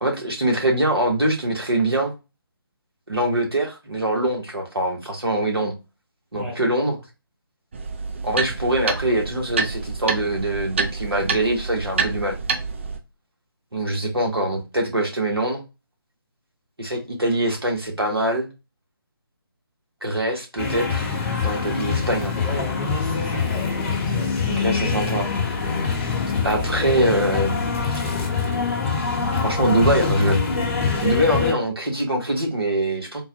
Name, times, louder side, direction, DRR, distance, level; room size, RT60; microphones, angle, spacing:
voice 1, 0.0-2.1 3.1-5.7 6.3-6.9 8.2-12.4 13.7-15.6 16.8-18.5 20.0-21.2 21.4-22.3 24.5-25.3 26.4-27.7 29.4-30.4 31.0-33.2, right 1 dB, 90° right, 1.4 m, -23 dB
sound 1, 7.7-13.0, right 4 dB, 30° right, 0.4 m, -28 dB
sound 2, 20.6-31.5, left 5 dB, 35° left, 0.9 m, -24 dB
voice 2, 22.3-24.3 31.3-31.4, equal, 5° right, 0.9 m, -36 dB
3.8 x 2.3 x 2.8 m
figure-of-eight pair, 150°, 12 cm